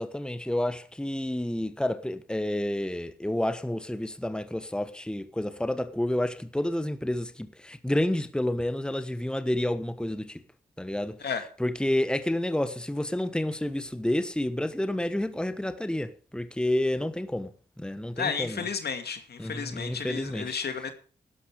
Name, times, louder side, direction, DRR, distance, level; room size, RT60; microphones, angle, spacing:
voice 1, 0.0-10.4 10.8-11.2 11.6-17.5 17.8-18.7 19.4-20.5, left 1 dB, 5° left, 1.2 m, -29 dB
voice 2, 18.2-20.9, left 6 dB, 70° left, 2.4 m, -32 dB
12.5 x 11.0 x 5.1 m
cardioid pair, 60°, 17 cm